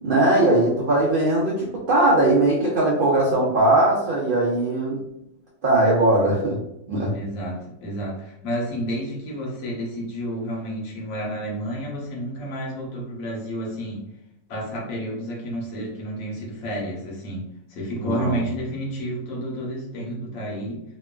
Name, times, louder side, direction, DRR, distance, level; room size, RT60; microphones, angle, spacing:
voice 1, 0.0-5.0 5.6-6.6 6.9-7.2 18.0-18.4, right 2 dB, 85° right, -4 dB, 0.4 m, -20 dB
voice 2, 7.1-14.0 14.5-20.8, equal, 65° left, -2 dB, 1.2 m, -30 dB
3.0 x 2.2 x 2.3 m, 0.82 s
omnidirectional pair, 1.6 m